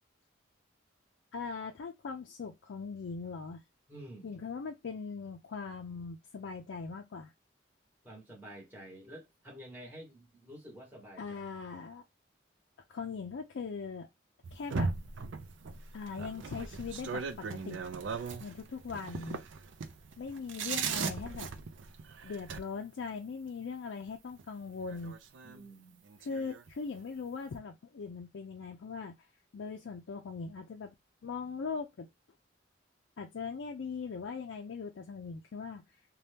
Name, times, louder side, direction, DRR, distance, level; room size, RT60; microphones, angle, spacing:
voice 1, 1.3-3.6 4.2-7.3 11.2-12.0 12.9-14.1 14.5-14.9 15.9-17.8 18.4-19.4 20.2-21.5 22.2-25.1 26.2-29.2 29.5-30.9 31.2-32.1 33.2-35.8, left 5 dB, 70° left, 0.4 m, -40 dB
voice 2, 3.9-4.4 8.0-11.4 25.4-26.0, right 1 dB, 10° right, 1.2 m, -49 dB
sound 1, 14.4-22.6 24.4-24.5 24.9-25.6 26.1-26.7, right 5 dB, 70° right, 0.4 m, -38 dB
2.7 x 2.2 x 3.3 m
head